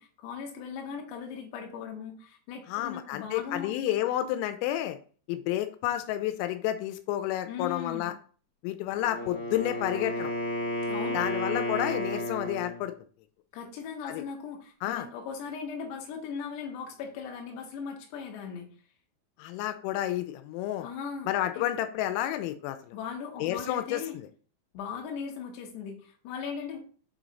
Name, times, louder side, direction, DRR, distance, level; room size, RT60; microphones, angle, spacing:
voice 1, 0.0-3.7 7.5-8.1 10.9-11.3 13.5-18.7 20.8-21.3 21.5-21.6 22.9-24.2 24.7-26.8, left 6 dB, 70° left, 1 dB, 3.0 m, -38 dB
voice 2, 2.7-5.0 5.3-8.1 8.6-10.3 11.1-12.9 14.1-14.2 14.8-15.1 19.4-20.9 21.3-22.9 23.4-24.3, left 13 dB, 90° left, 8 dB, 3.2 m, -30 dB
Wind instrument woodwind instrument, 8.9-12.8, left 1 dB, 45° left, 2.5 m, -32 dB
7.5 x 3.1 x 4.0 m, 0.41 s
omnidirectional pair, 5.8 m